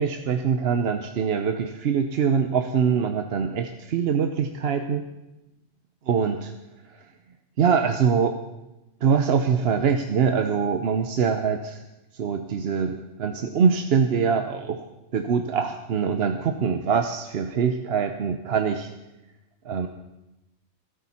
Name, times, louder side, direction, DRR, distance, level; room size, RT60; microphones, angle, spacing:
voice 1, 0.0-5.0 6.1-6.5 7.6-8.4 9.0-11.8 12.2-14.8 15.1-18.9 19.7-19.9, right 6 dB, 55° right, 7 dB, 0.9 m, -23 dB
25.5 x 8.6 x 4.3 m, 0.97 s
omnidirectional pair, 1.3 m